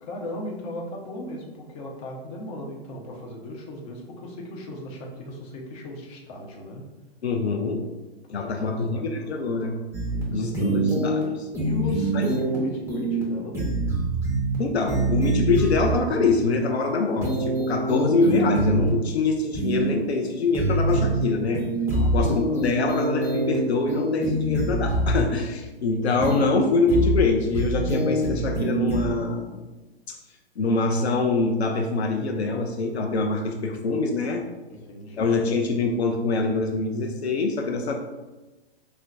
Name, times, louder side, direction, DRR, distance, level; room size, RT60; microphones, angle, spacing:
voice 1, 0.0-6.8 8.3-9.4 10.1-10.5 11.6-13.6 21.9-22.7 34.7-35.3, left 1 dB, 35° left, -1 dB, 0.9 m, -36 dB
voice 2, 7.2-7.8 8.3-9.8 10.3-11.5 12.1-12.2 14.6-21.6 22.1-29.6 30.1-30.2 30.6-34.4 35.2-37.9, left 3 dB, 90° left, 2 dB, 0.5 m, -24 dB
sound 1, 9.9-10.2 10.5-11.2 11.5-12.5 12.9-13.2 13.5-14.5 14.9-15.9 17.2-18.9 19.5-19.9 20.5-21.2 21.5-23.5 23.9-25.2 26.2-26.5 26.9-27.2 27.5-29.1, right 2 dB, 10° right, 0.9 m, -24 dB
5.6 x 2.1 x 2.5 m, 1.1 s
hypercardioid pair, 120°, 31 cm